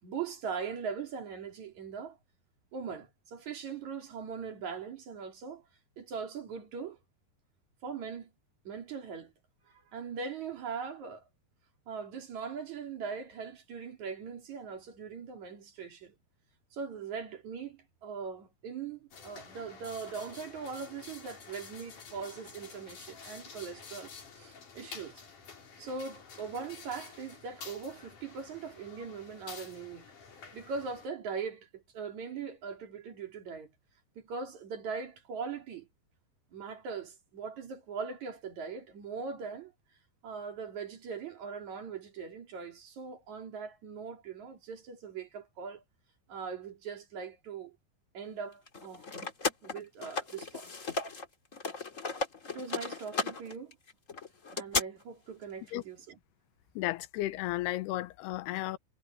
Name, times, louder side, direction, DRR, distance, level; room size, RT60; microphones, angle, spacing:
voice 1, 0.0-2.2 2.7-5.6 6.0-7.0 7.8-8.3 8.7-9.3 9.7-11.2 11.9-16.1 16.7-25.2 25.8-30.1 30.5-33.7 34.2-35.9 36.5-39.7 40.2-45.8 46.3-47.8 48.1-49.1 49.6-50.7 52.5-53.8 54.5-56.2, right 5 dB, 45° right, 4.0 m, -40 dB
sound 1, 19.1-31.1, left 5 dB, 50° left, 5.2 m, -50 dB
sound 2, 48.7-51.3 51.5-54.8, left 4 dB, 35° left, 1.4 m, -35 dB
voice 2, 56.8-58.8, left 16 dB, 80° left, 2.7 m, -33 dB
omnidirectional pair, 4.8 m